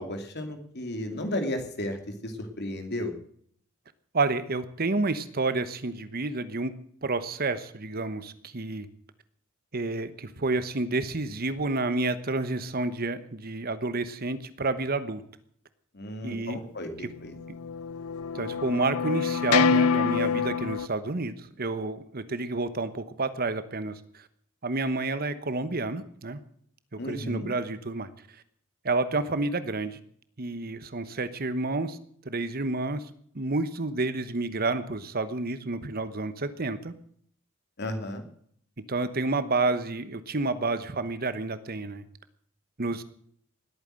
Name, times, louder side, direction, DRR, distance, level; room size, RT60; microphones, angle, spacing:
voice 1, 0.0-2.0 2.2-3.1 15.9-16.9 17.2-17.3 27.0-27.5 37.8-38.2, left 1 dB, 50° left, 6 dB, 2.7 m, -33 dB
voice 2, 4.1-6.7 7.0-8.9 9.7-15.2 16.2-16.6 17.0-17.1 18.3-24.3 24.6-26.4 26.9-28.1 28.8-30.0 30.4-32.0 32.2-33.0 33.3-36.9 38.9-42.0 42.8-43.0, right 3 dB, 45° right, 13 dB, 1.1 m, -29 dB
sound 1, 17.3-20.9, left 5 dB, 85° left, 0.7 m, -26 dB
19.5 x 9.2 x 7.7 m, 0.63 s
head